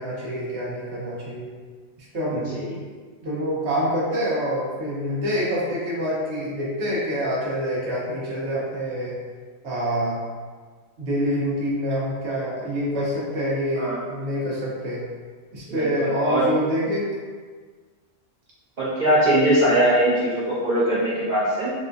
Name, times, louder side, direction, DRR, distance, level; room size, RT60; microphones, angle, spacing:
voice 1, 0.0-1.5 2.0-2.7 3.2-9.2 9.6-10.2 11.0-15.0 15.5-17.1, equal, 65° right, -6 dB, 1.2 m, -26 dB
voice 2, 2.3-2.7 13.7-14.0 15.7-16.4 18.8-21.7, right 1 dB, 40° right, -10 dB, 0.9 m, -21 dB
4.1 x 2.2 x 2.5 m, 1.5 s
omnidirectional pair, 1.3 m